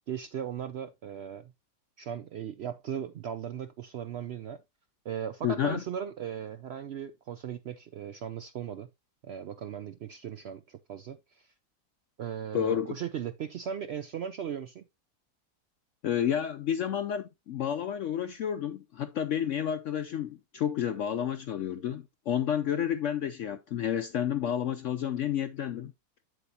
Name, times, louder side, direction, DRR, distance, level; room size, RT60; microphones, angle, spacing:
voice 1, 0.1-1.5 2.0-4.6 5.0-8.9 9.2-11.5 12.2-14.8, right 8 dB, 85° right, 0.5 m, -37 dB
voice 2, 5.4-5.8 12.5-13.0 16.0-25.9, left 9 dB, 70° left, 0.7 m, -30 dB
8.2 x 7.7 x 2.7 m
omnidirectional pair, 1.7 m